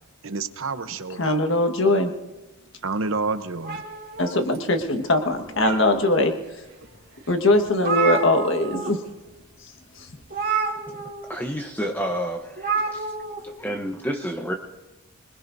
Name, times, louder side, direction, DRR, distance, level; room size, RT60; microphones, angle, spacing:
voice 1, 0.2-1.4 2.8-3.8, right 3 dB, 70° right, 10 dB, 0.9 m, -29 dB
voice 2, 1.2-2.1 4.2-6.3 7.3-9.0 10.0-10.1, left 2 dB, 60° left, 6 dB, 1.6 m, -21 dB
sound 1, 3.6-4.8 5.3-6.2 6.8-6.9 7.3-7.4 7.5-8.9 9.2-9.4 10.3-11.3 12.5-13.4, right 5 dB, 45° right, 3.1 m, -29 dB
voice 3, 11.3-13.1 13.4-14.5, equal, 10° left, 2 dB, 0.9 m, -30 dB
26.5 x 20.0 x 2.7 m, 1.1 s
head